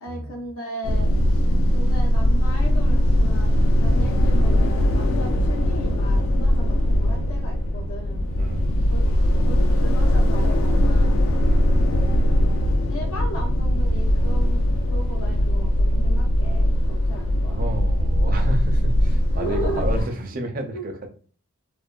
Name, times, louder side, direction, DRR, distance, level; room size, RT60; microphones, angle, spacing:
voice 1, 0.0-1.1 1.7-3.5 3.8-8.3 8.9-9.0 9.4-11.1 11.8-11.9 12.9-17.6 19.3-20.1 20.7-20.9, equal, 90° left, -1 dB, 0.7 m, -36 dB
sound 1, 0.8-20.0, equal, 65° left, 0.3 m, -20 dB
voice 2, 8.4-8.8 11.5-11.9 17.5-21.1, right 1 dB, 40° right, 3 dB, 0.4 m, -31 dB
2.5 x 2.1 x 2.3 m, 0.42 s
head